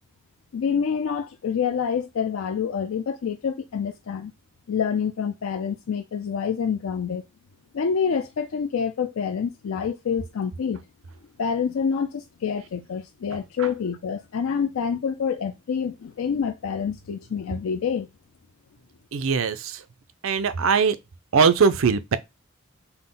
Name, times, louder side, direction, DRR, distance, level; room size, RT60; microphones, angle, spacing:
voice 1, 0.5-4.3 4.7-7.2 7.7-10.8 11.4-18.1, left 6 dB, 85° left, 0.4 m, -27 dB
voice 2, 19.1-19.8 20.2-21.0 21.3-22.2, right 5 dB, 80° right, 0.5 m, -20 dB
5.7 x 2.1 x 3.7 m
head